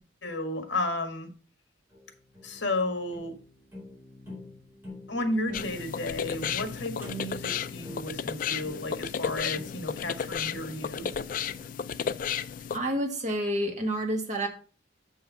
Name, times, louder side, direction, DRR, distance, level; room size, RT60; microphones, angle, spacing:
voice 1, 0.2-1.3 2.4-3.4 5.1-11.1, left 2 dB, 70° left, 6 dB, 1.6 m, -33 dB
sound 1, 1.9-13.1, left 2 dB, 10° right, 4.4 m, -48 dB
sound 2, 5.5-12.8, left 7 dB, 45° left, 0.3 m, -33 dB
voice 2, 12.7-14.5, right 1 dB, 40° right, 2 dB, 1.7 m, -29 dB
6.9 x 5.5 x 5.5 m, 0.38 s
head